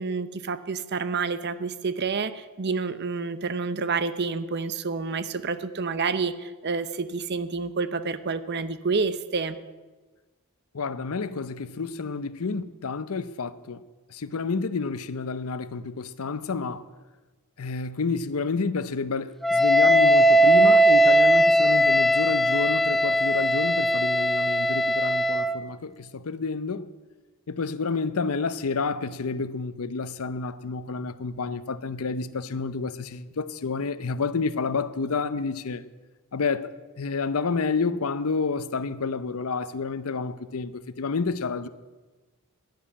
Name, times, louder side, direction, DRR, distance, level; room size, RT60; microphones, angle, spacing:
voice 1, 0.0-9.5, right 4 dB, 50° right, 0.7 m, -29 dB
voice 2, 10.7-13.8 14.1-16.9 17.6-26.9 27.5-35.8 36.3-41.7, left 4 dB, 75° left, 0.6 m, -29 dB
Wind instrument woodwind instrument, 19.4-25.6, equal, ahead, 0.3 m, -19 dB
11.0 x 10.5 x 8.6 m
head